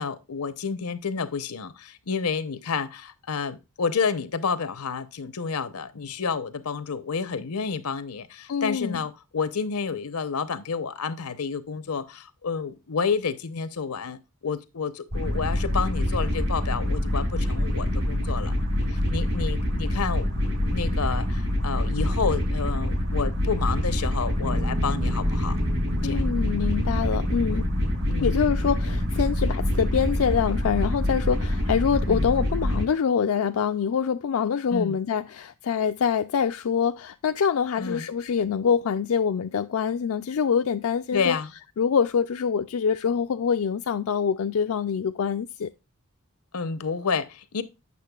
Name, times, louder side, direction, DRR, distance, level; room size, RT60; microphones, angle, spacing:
voice 1, 0.0-18.5 18.9-25.6 26.0-26.2 28.1-28.4 32.1-32.3 34.7-35.0 37.8-38.1 41.1-41.5 46.5-47.6, left 5 dB, 85° left, 0.8 m, -30 dB
voice 2, 8.5-9.0 26.0-27.7 28.2-41.4 41.8-45.7, left 7 dB, 65° left, 0.4 m, -25 dB
sound 1, 15.1-32.8, left 1 dB, 75° right, 4.7 m, -26 dB
Piano, 24.4-29.5, right 1 dB, 35° right, 0.7 m, -36 dB
8.4 x 6.6 x 2.3 m
head